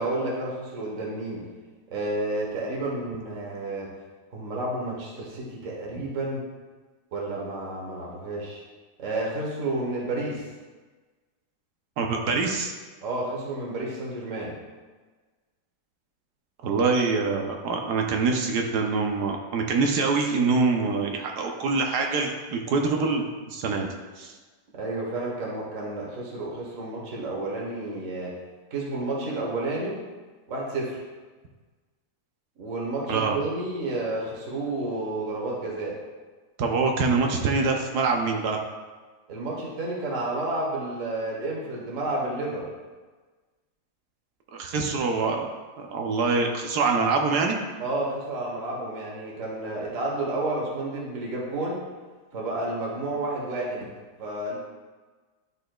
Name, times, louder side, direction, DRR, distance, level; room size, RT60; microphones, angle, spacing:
voice 1, 0.0-1.4 1.9-3.9 4.3-6.4 7.1-8.6 9.0-10.5 13.0-14.5 24.7-28.3 28.7-30.0 30.5-31.0 32.6-36.0 39.3-42.7 47.8-51.8 52.3-53.8 54.2-54.5, right 2 dB, 50° right, -3 dB, 1.4 m, -31 dB
voice 2, 12.0-12.7 16.6-23.9 24.2-24.4 33.1-33.4 36.6-38.6 44.5-45.5 45.8-47.6, right 4 dB, 70° right, 2 dB, 1.2 m, -25 dB
10.5 x 4.1 x 2.3 m, 1.4 s
omnidirectional pair, 1.9 m